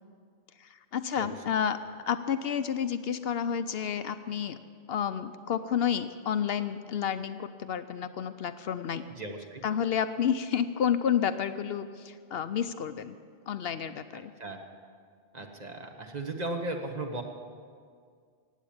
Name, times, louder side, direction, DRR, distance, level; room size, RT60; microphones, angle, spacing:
voice 1, 0.6-1.8 2.0-4.6 4.9-9.0 9.6-13.2 13.5-14.3, left 8 dB, 65° left, 11 dB, 0.8 m, -30 dB
voice 2, 9.2-9.6 14.4-14.6 15.3-17.2, right 2 dB, 40° right, 3 dB, 1.3 m, -36 dB
16.0 x 9.1 x 8.7 m, 2.1 s
omnidirectional pair, 1.1 m